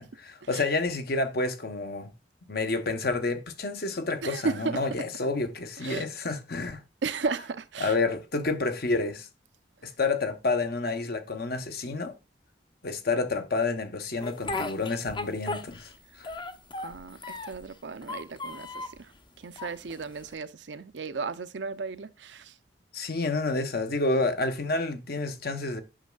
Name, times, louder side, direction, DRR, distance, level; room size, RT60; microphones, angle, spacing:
voice 1, 0.0-2.1 2.5-6.8 7.8-9.3 9.8-12.1 12.8-15.9 16.2-16.3 22.9-25.8, left 3 dB, 60° left, 1.0 m, -29 dB
voice 2, 4.2-4.8 5.8-6.0 7.0-8.0 16.8-19.1 19.4-22.5, right 4 dB, 90° right, 0.6 m, -34 dB
Speech, 14.2-16.0 16.2-17.7 18.0-19.0 19.6-20.3, left 3 dB, 25° left, 0.7 m, -36 dB
8.8 x 6.3 x 2.3 m
head